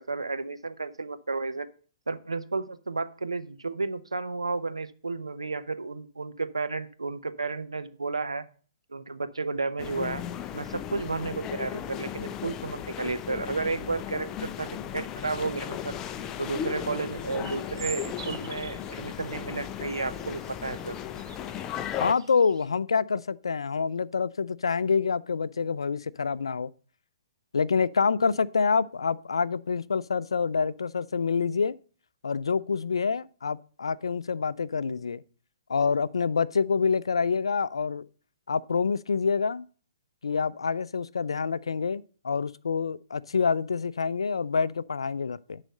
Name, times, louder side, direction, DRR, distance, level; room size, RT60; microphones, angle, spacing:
voice 1, 0.0-1.7 2.1-8.4 8.9-10.2 10.5-14.7 14.9-16.0 16.4-20.9, right 3 dB, 90° right, 0.8 m, -32 dB
sound 1, 9.8-22.1, left 10 dB, 25° left, 0.5 m, -36 dB
sound 2, 15.2-22.7, right 7 dB, 60° right, 1.0 m, -47 dB
voice 2, 22.0-26.7 27.5-31.7 32.2-35.2 35.7-38.0 38.5-39.6 40.2-45.6, left 5 dB, 80° left, 0.4 m, -27 dB
10.5 x 4.1 x 6.4 m
figure-of-eight pair, 125°, 3 cm